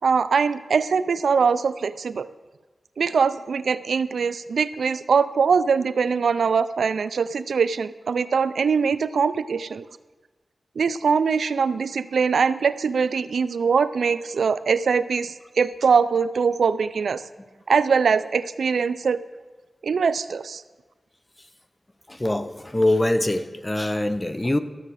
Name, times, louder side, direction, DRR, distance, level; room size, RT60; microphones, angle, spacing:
voice 1, 0.0-2.3 3.0-9.8 10.8-17.2 17.7-19.2 19.8-20.6, right 5 dB, 80° right, 15 dB, 0.4 m, -22 dB
voice 2, 22.1-24.6, left 1 dB, 20° left, 11 dB, 0.7 m, -23 dB
13.0 x 7.2 x 6.4 m, 1.3 s
cardioid pair, 70°, 0 cm